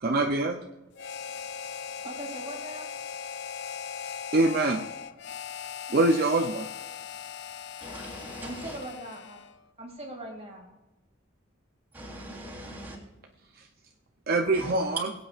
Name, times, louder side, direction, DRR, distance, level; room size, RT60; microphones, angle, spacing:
voice 1, 0.0-0.6 4.3-4.8 5.9-6.7 14.3-15.1, right 2 dB, 50° right, 0.7 m, -24 dB
Harmonica, 0.9-9.6, left 7 dB, 55° left, 0.5 m, -39 dB
voice 2, 2.0-2.9 8.4-9.4 9.8-10.7, right 1 dB, 30° right, 2.4 m, -40 dB
voice 3, 7.8-8.8 11.9-13.0 14.5-14.7, right 1 dB, 10° right, 3.5 m, -41 dB
22.5 x 8.5 x 2.5 m
head